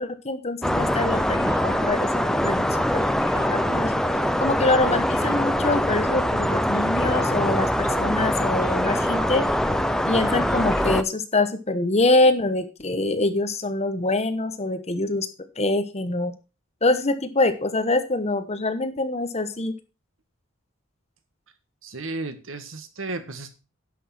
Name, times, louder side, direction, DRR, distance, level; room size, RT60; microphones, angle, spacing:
voice 1, 0.0-2.1 2.4-3.0 3.3-3.9 4.4-9.4 10.1-15.3 15.6-16.3 16.8-19.7, left 2 dB, 30° left, 9 dB, 1.2 m, -24 dB
sound 1, 0.6-11.0, equal, ahead, 0.5 m, -23 dB
sound 2, 0.9-10.8, left 2 dB, 50° left, 1.2 m, -38 dB
voice 2, 21.8-23.5, right 2 dB, 70° right, 9 dB, 1.6 m, -33 dB
11.0 x 6.3 x 6.0 m, 0.32 s
head